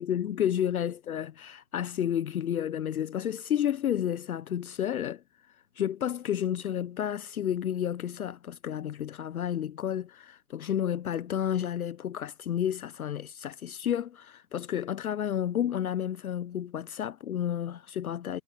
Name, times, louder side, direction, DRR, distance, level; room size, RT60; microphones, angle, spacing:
voice 1, 0.0-5.2 5.8-18.4, left 10 dB, 60° left, 1.0 m, -31 dB
hypercardioid pair, 140°, 49 cm